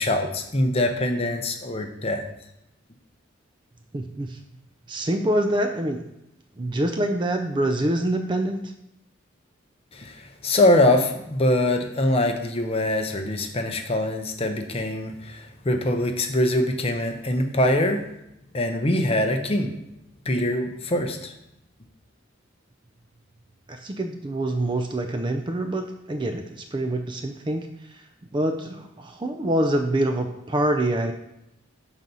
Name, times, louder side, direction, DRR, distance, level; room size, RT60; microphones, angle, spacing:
voice 1, 0.0-2.2 9.9-18.1 18.5-19.8 20.3-21.3, left 1 dB, 30° left, 5 dB, 0.7 m, -23 dB
voice 2, 3.9-4.4 4.9-6.1 6.6-8.7 23.7-28.0 28.3-31.1, right 1 dB, 25° right, 5 dB, 0.4 m, -26 dB
6.1 x 4.0 x 5.4 m, 0.82 s
head